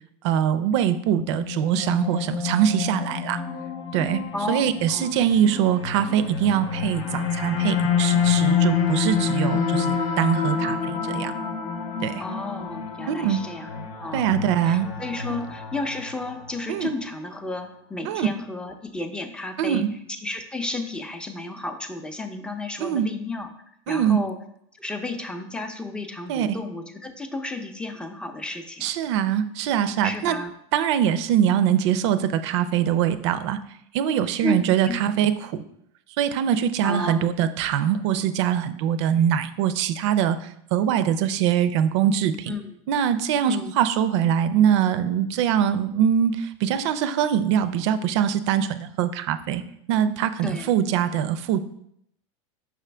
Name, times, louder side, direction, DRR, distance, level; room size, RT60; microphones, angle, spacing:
voice 1, 0.2-3.4 3.9-4.2 4.5-11.3 12.0-12.2 13.1-13.4 14.1-14.9 16.7-16.9 18.0-18.3 19.6-19.9 22.8-23.1 23.9-24.2 26.3-26.6 28.8-30.4 30.7-33.6 33.9-35.6 36.2-40.4 40.7-42.5 42.9-49.6 49.9-51.6, right 9 dB, 65° right, 12 dB, 0.5 m, -23 dB
sound 1, 1.2-16.6, left 6 dB, 80° left, 1.0 m, -27 dB
voice 2, 12.2-13.7 14.0-14.4 14.6-19.8 20.2-23.5 23.9-24.4 24.7-28.9 30.0-30.5 34.4-34.5 34.8-35.0 36.8-37.3 42.5-42.7 43.4-43.7 50.4-50.7, left 2 dB, 5° left, 6 dB, 0.5 m, -32 dB
6.1 x 5.0 x 3.3 m, 0.74 s
supercardioid pair, 130°, 16 cm